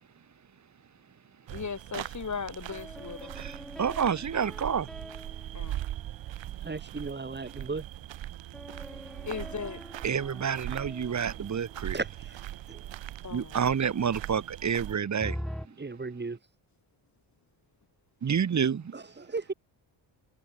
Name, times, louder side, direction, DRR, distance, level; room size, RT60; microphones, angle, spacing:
voice 1, 1.5-3.3 5.5-5.8 9.2-9.8 13.2-13.6, left 5 dB, 40° left, 5.1 m, -37 dB
sound 1, 1.5-15.0, right 13 dB, 85° right, 5.6 m, -41 dB
sound 2, 2.7-6.5 8.5-12.1 15.2-15.7, equal, ahead, 5.2 m, -44 dB
voice 2, 3.3-4.9 10.0-12.0 13.3-15.4 18.2-18.9, right 7 dB, 40° right, 1.5 m, -29 dB
voice 3, 6.6-7.8 11.9-12.4 12.7-12.8 15.7-16.4 18.9-19.5, right 4 dB, 25° right, 3.1 m, -36 dB
cardioid pair, 80°, 44 cm